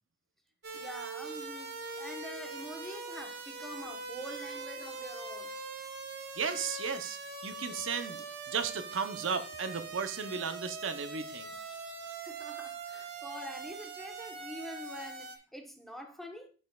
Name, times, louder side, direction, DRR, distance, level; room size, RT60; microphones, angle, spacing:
sound 1, 0.6-15.4, right 4 dB, 60° right, 1.1 m, -42 dB
voice 1, 0.7-5.5 12.2-16.5, equal, ahead, 1.0 m, -45 dB
voice 2, 6.3-11.6 11.9-12.0, right 6 dB, 90° right, 0.7 m, -35 dB
12.0 x 4.2 x 2.3 m
head